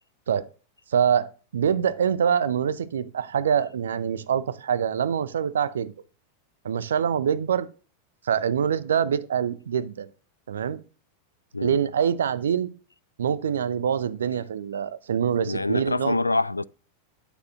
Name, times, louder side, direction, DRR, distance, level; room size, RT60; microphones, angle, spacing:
voice 1, 0.9-1.3 1.5-5.9 6.6-7.7 8.2-10.1 10.5-10.8 11.6-12.7 13.2-16.2, right 8 dB, 65° right, 0.6 m, -25 dB
voice 2, 15.3-16.6, left 2 dB, 80° left, 0.3 m, -26 dB
11.0 x 9.2 x 2.5 m
figure-of-eight pair, 90°, 0 cm